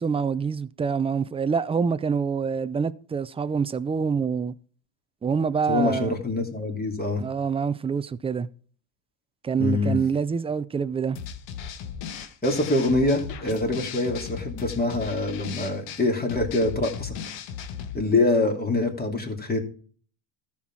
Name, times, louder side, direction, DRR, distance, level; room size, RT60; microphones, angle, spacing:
voice 1, 0.0-4.5 5.2-6.1 7.2-8.5 9.4-11.2, right 6 dB, 10° right, 0.4 m, -26 dB
voice 2, 5.7-7.2 9.6-10.0 12.4-17.1 17.9-19.6, left 2 dB, 20° left, 2.9 m, -25 dB
sound 1, 11.2-18.0, left 8 dB, 65° left, 1.6 m, -37 dB
13.5 x 6.0 x 4.7 m
supercardioid pair, 100°, 48 cm